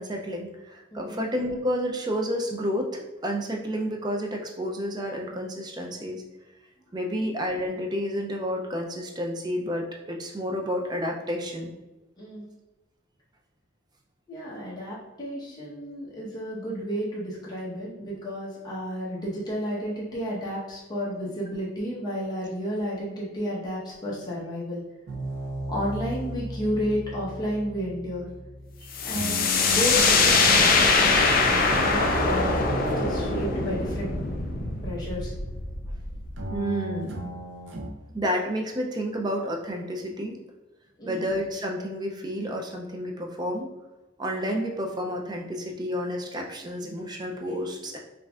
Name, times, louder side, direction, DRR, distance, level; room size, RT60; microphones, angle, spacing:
voice 1, 0.0-6.2 6.9-11.7 28.8-28.9 36.5-37.2 38.1-40.4 41.1-43.7 44.2-48.0, equal, 20° right, 1 dB, 0.4 m, -30 dB
voice 2, 0.9-1.2 12.2-12.5 14.3-24.8 25.7-28.3 29.0-34.1 34.8-35.3 41.0-41.3, equal, 20° left, -7 dB, 1.0 m, -32 dB
sound 1, 25.1-37.9, right 1 dB, 65° right, 0.6 m, -36 dB
sound 2, 28.9-36.5, left 4 dB, 45° left, 0.4 m, -23 dB
5.3 x 2.5 x 2.4 m, 1.1 s
head